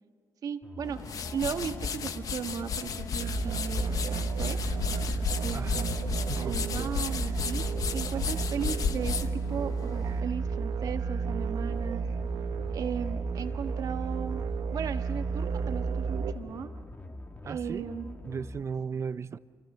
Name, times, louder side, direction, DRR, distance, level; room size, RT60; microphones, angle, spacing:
voice 1, 0.4-4.6 5.4-9.2 9.5-12.0 12.7-14.4 14.7-16.7 17.4-18.2, right 7 dB, 65° right, 1.5 m, -36 dB
sound 1, 0.6-18.7, left 1 dB, 25° left, 1.4 m, -44 dB
sound 2, 0.8-10.2, left 6 dB, 65° left, 1.0 m, -34 dB
sound 3, 3.2-16.3, right 5 dB, 85° right, 1.4 m, -32 dB
voice 2, 5.5-6.0 6.3-6.9 17.4-17.9 18.2-19.4, right 6 dB, 45° right, 0.6 m, -36 dB
28.0 x 24.5 x 5.6 m
cardioid pair, 85°, 7 cm